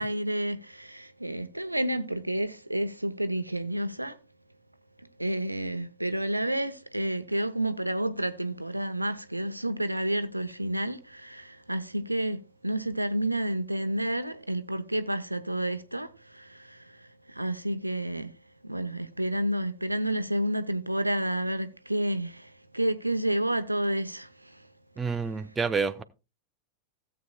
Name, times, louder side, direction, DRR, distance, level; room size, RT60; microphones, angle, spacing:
voice 1, 0.0-4.2 5.0-24.7 25.0-25.6, right 1 dB, 85° right, 0.7 m, -30 dB
voice 2, 25.0-26.0, right 5 dB, 15° right, 0.8 m, -28 dB
16.5 x 7.8 x 2.3 m
figure-of-eight pair, 90°, 0 cm